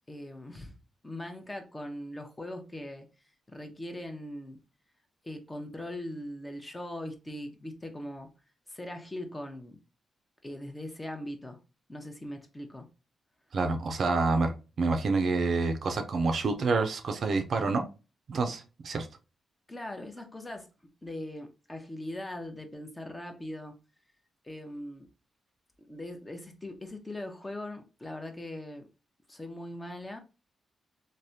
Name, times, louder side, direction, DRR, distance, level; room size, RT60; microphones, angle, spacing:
voice 1, 0.1-0.8 1.0-3.1 3.5-4.6 5.2-8.3 8.7-9.8 10.4-11.6 11.9-12.9 19.7-20.7 21.0-23.7 24.4-25.1 25.8-28.9 29.3-30.2, left 1 dB, 20° left, 0.7 m, -40 dB
voice 2, 13.5-17.9 18.3-19.1, right 3 dB, 65° right, 0.4 m, -28 dB
3.3 x 2.1 x 2.7 m
cardioid pair, 60°, 0 cm